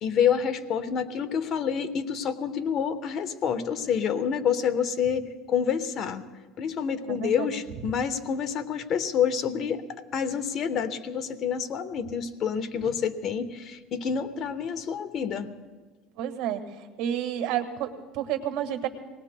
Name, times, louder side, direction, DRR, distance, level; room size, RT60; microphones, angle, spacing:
voice 1, 0.0-6.2 6.6-9.8 10.1-15.5, left 7 dB, 50° left, 9 dB, 1.0 m, -28 dB
voice 2, 7.1-7.5 16.2-16.6 17.0-18.9, right 10 dB, 65° right, 6 dB, 1.6 m, -30 dB
24.5 x 18.5 x 2.2 m, 1.3 s
supercardioid pair, 105°, 0 cm